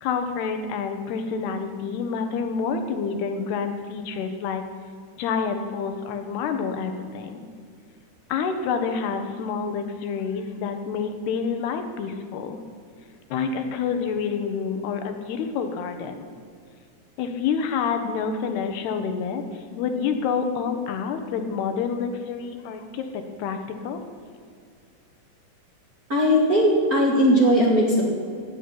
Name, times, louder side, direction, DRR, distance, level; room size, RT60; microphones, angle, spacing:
voice 1, 0.0-4.6 5.2-7.4 8.3-12.6 13.3-16.3 17.2-24.0, left 6 dB, 80° left, 7 dB, 3.2 m, -28 dB
voice 2, 26.1-28.1, equal, 30° right, -3 dB, 2.1 m, -19 dB
15.5 x 8.4 x 9.9 m, 2.2 s
omnidirectional pair, 4.7 m